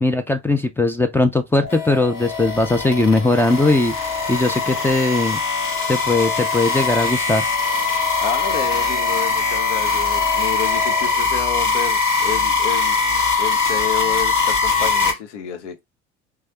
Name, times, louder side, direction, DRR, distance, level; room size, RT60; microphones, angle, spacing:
voice 1, 0.0-3.9 4.3-5.4 5.9-7.5, left 2 dB, 5° left, 0.3 m, -19 dB
sound 1, 1.6-11.1, left 5 dB, 55° left, 1.9 m, -33 dB
sound 2, 1.7-15.1, left 4 dB, 35° left, 1.5 m, -21 dB
voice 2, 8.2-13.0 13.4-15.8, left 8 dB, 75° left, 0.7 m, -29 dB
3.0 x 2.4 x 2.8 m
figure-of-eight pair, 65°, 36 cm